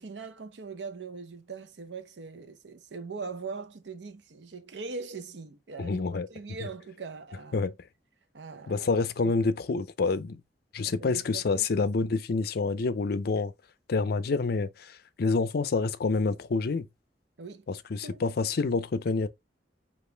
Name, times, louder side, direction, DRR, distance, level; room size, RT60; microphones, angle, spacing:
voice 1, 0.0-7.6 8.3-8.9 9.2-9.3 10.8-11.7 17.4-17.7 18.0-18.3, right 4 dB, 85° right, 0.7 m, -41 dB
voice 2, 5.8-6.3 7.5-7.7 8.7-10.4 10.7-13.5 13.9-16.9 17.7-19.3, left 4 dB, 60° left, 0.5 m, -27 dB
5.2 x 2.5 x 3.3 m
head